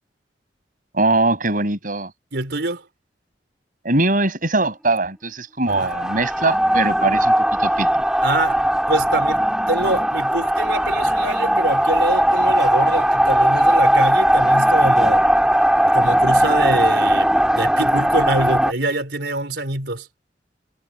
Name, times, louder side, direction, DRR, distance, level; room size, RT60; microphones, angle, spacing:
voice 1, 0.9-2.1 3.8-7.3 7.6-8.0, right 2 dB, 50° right, 7.1 m, -21 dB
voice 2, 2.3-2.9 5.7-5.9 8.2-8.6 8.9-15.2 15.9-20.1, right 2 dB, 75° right, 4.3 m, -25 dB
sound 1, 5.7-18.7, right 1 dB, 5° right, 1.6 m, -18 dB
head